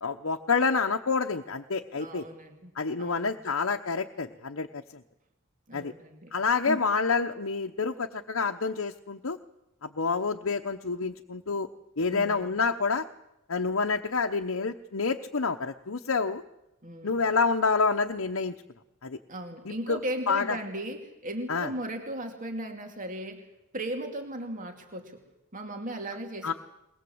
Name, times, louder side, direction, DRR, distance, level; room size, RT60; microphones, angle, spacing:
voice 1, 0.0-2.2 2.7-5.0 5.7-5.9 6.3-9.4 9.8-11.7 12.0-13.1 13.5-16.4 17.0-18.6 19.0-19.2 19.6-20.0 20.3-20.6 21.5-21.7 26.4-26.5, left 4 dB, 70° left, 3 dB, 1.0 m, -28 dB
voice 2, 2.0-2.7 3.0-3.4 5.7-6.3 6.6-6.8 12.1-12.5 16.8-17.2 19.3-23.5 23.7-25.2 25.5-26.5, right 1 dB, 40° right, 4 dB, 2.6 m, -36 dB
22.0 x 20.0 x 7.9 m, 0.90 s
head